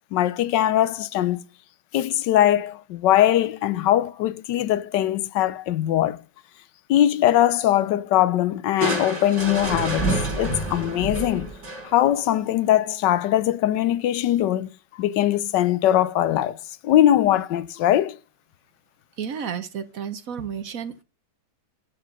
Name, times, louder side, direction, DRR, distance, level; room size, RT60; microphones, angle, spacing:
voice 1, 0.1-1.4 1.9-6.2 6.9-10.1 10.4-11.5 11.8-14.7 15.0-16.6 16.8-18.2, left 12 dB, 85° left, 1.3 m, -21 dB
Crushing, 8.8-12.2, right 1 dB, 40° right, 4.9 m, -27 dB
voice 2, 19.2-21.0, right 7 dB, 60° right, 1.2 m, -32 dB
12.0 x 4.6 x 5.2 m
omnidirectional pair, 1.9 m